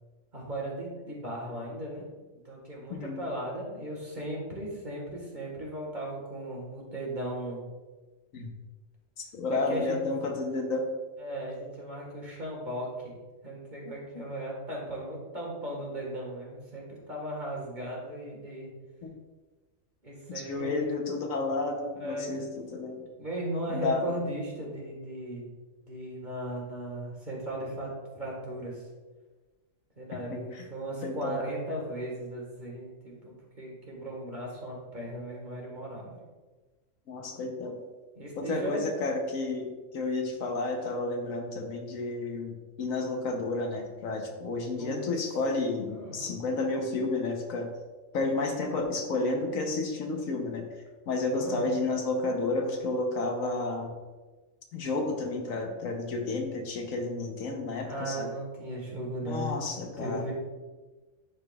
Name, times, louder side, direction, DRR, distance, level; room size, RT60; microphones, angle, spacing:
voice 1, 0.3-2.1 2.5-7.6 9.5-10.0 11.2-13.1 13.4-18.7 20.0-20.9 21.9-22.3 23.2-25.4 25.8-28.8 30.0-36.2 38.2-38.9 44.8-45.1 45.9-46.4 51.3-51.8 57.8-60.3, right 1 dB, 35° right, -2 dB, 1.8 m, -37 dB
voice 2, 2.9-3.2 8.3-8.5 9.2-10.8 19.0-19.1 20.3-23.0 23.7-24.0 30.3-30.6 31.0-31.4 37.1-37.8 38.4-47.7 48.1-50.6 51.1-53.9 54.7-58.3 59.2-60.2, left 3 dB, 90° left, 3 dB, 1.4 m, -31 dB
11.0 x 5.0 x 2.4 m, 1.3 s
omnidirectional pair, 1.4 m